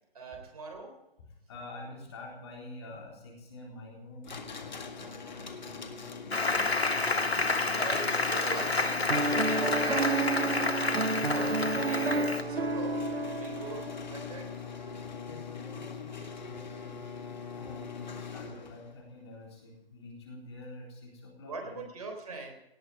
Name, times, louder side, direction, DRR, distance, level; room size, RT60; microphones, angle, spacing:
voice 1, 0.1-1.0 7.7-13.0 13.4-14.5 21.5-22.5, right 3 dB, 40° right, 3 dB, 3.7 m, -41 dB
voice 2, 1.5-8.0 15.2-16.1 16.5-21.9, left 2 dB, 25° left, -1 dB, 3.9 m, -48 dB
sound 1, 4.2-18.9, left 6 dB, 45° left, 1.7 m, -42 dB
Applause, 6.3-12.4, left 3 dB, 90° left, 1.7 m, -29 dB
Piano, 9.1-14.4, right 3 dB, 75° right, 1.2 m, -31 dB
18.0 x 7.4 x 9.2 m, 0.88 s
figure-of-eight pair, 160°, 31 cm